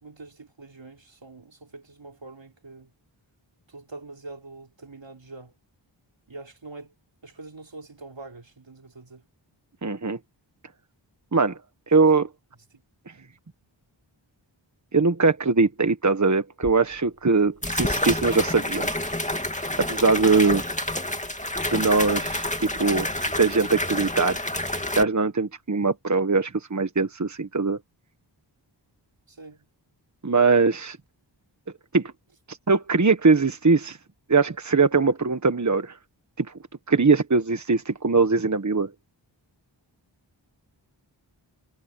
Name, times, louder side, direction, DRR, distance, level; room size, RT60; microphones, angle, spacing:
voice 1, 0.0-2.9 3.7-5.6 6.3-6.9 7.2-9.2 12.1-12.3 12.7-12.8 13.2-13.3 29.3-29.7, right 3 dB, 75° right, 3.7 m, -44 dB
voice 2, 9.8-10.2 11.3-11.6 11.9-12.2 14.9-19.0 19.9-20.6 21.7-23.1 23.4-24.4 25.0-27.8 30.2-31.0 31.9-32.1 32.5-34.0 34.3-36.0 36.4-36.5 36.9-38.9, right 4 dB, 40° right, 1.3 m, -21 dB
sound 1, 16.6-16.7 17.6-25.0, left 1 dB, 15° left, 2.4 m, -28 dB
wide cardioid pair, 40°, 45 cm